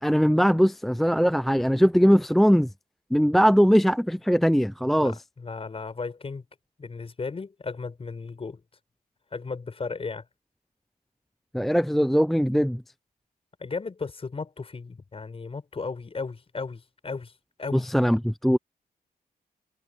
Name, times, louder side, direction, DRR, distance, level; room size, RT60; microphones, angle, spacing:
voice 1, 0.0-2.7 3.1-5.1 11.5-12.8 17.7-18.6, equal, ahead, 0.5 m, -20 dB
voice 2, 5.0-6.4 6.8-8.6 9.3-10.2 13.6-17.3 17.6-17.9, left 4 dB, 35° left, 5.6 m, -35 dB
cardioid pair, 95°, 16 cm